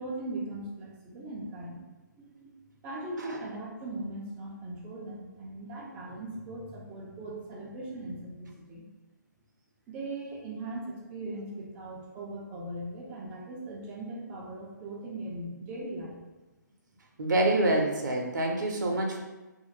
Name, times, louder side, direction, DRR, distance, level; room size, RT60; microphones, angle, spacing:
voice 1, 0.0-1.8 2.2-2.5 2.8-8.8 9.9-16.2, right 2 dB, 10° right, -3 dB, 0.3 m, -39 dB
voice 2, 17.2-19.2, right 1 dB, 70° right, 1 dB, 0.5 m, -26 dB
2.5 x 2.1 x 3.0 m, 1.1 s
hypercardioid pair, 155°, 10 cm